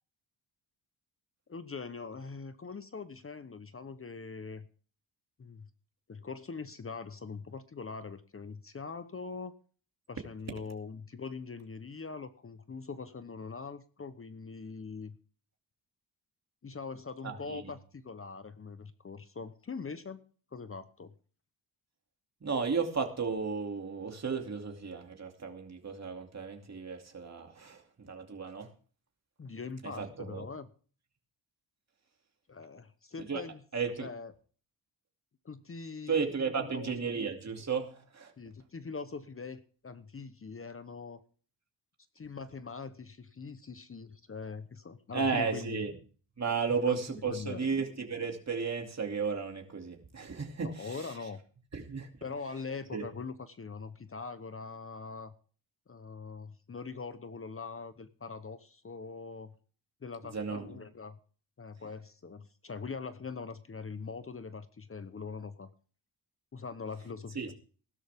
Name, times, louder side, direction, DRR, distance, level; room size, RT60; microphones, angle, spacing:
voice 1, 1.5-4.7 5.4-5.7 6.1-9.5 10.1-15.2 16.6-20.2 20.5-21.1 29.4-30.7 32.5-33.6 34.0-34.3 35.4-36.3 36.6-36.9 38.4-41.2 42.1-45.9 46.9-47.0 47.3-47.7 50.6-51.4 52.2-55.3 55.9-59.5 60.0-61.2 61.6-65.7 66.5-67.5, left 4 dB, 30° left, 12 dB, 0.9 m, -42 dB
voice 2, 17.2-17.6 22.4-28.7 30.0-30.4 33.3-33.4 33.7-34.1 36.1-38.3 45.1-45.9 46.4-51.0 51.7-52.1 52.9-53.0 60.3-60.8 67.3-67.5, right 5 dB, 35° right, 3 dB, 2.7 m, -34 dB
16.0 x 12.5 x 3.6 m, 0.41 s
cardioid pair, 95°, 44 cm